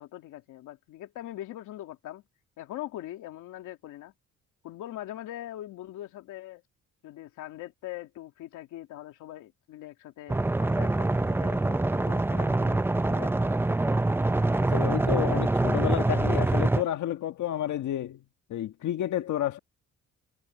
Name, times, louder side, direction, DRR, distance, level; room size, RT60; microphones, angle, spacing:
voice 1, 0.0-2.2 2.6-4.1 4.6-6.6 7.0-13.5, left 14 dB, 90° left, 2.8 m, -42 dB
sound 1, 10.3-16.8, right 2 dB, 10° right, 0.5 m, -25 dB
voice 2, 14.6-18.2 18.5-19.6, left 12 dB, 75° left, 1.6 m, -30 dB
cardioid pair, 90°, 30 cm